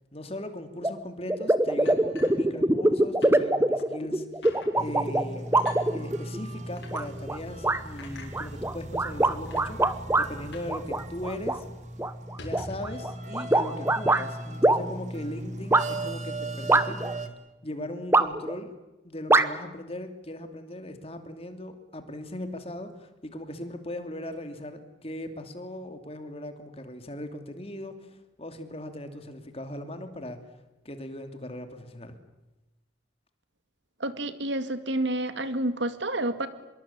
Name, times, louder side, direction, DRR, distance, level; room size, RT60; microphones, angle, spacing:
voice 1, 0.1-5.5 5.9-11.6 12.3-17.0 17.6-18.7 19.0-30.4 30.8-32.2, left 1 dB, 30° left, 8 dB, 2.7 m, -39 dB
sound 1, 0.8-0.9 1.3-6.4 6.9-7.4 7.6-7.8 8.3-10.3 10.7-11.6 12.0-14.2 14.6-14.8 15.7-15.8 16.7-17.1 18.1-18.6 19.3-19.5, right 2 dB, 15° right, 1.0 m, -23 dB
sound 2, 1.9-2.9 3.2-3.4 3.8-3.9 4.4-4.7 5.6-5.8 6.8-7.0 8.0-8.3 9.1-9.2 9.5-9.7 10.5-10.8 11.0-11.1 11.5-11.7 12.2-13.0, left 2 dB, 65° left, 6.7 m, -44 dB
sound 3, 4.8-17.3, right 1 dB, 40° right, 2.3 m, -38 dB
voice 2, 34.0-36.5, right 1 dB, 70° right, 11 dB, 2.1 m, -29 dB
25.5 x 22.5 x 8.7 m, 1.0 s
head